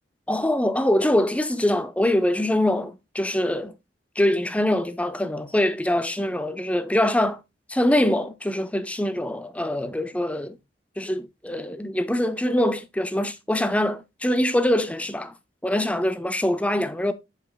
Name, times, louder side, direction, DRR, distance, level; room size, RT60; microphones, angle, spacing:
voice 1, 0.3-3.7 4.2-7.4 7.7-10.6 11.0-15.3 15.6-17.1, left 1 dB, 10° left, 0.6 m, -23 dB
7.9 x 7.1 x 2.4 m
head